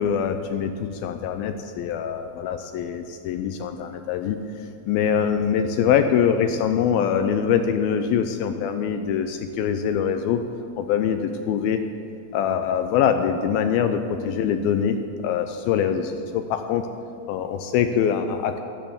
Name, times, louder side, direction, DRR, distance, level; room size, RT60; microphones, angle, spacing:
voice 1, 0.0-4.4 4.9-10.4 10.8-11.8 12.3-15.0 15.2-16.8 17.3-18.6, left 8 dB, 80° left, 7 dB, 2.2 m, -23 dB
15.0 x 10.5 x 7.1 m, 2.4 s
omnidirectional pair, 4.7 m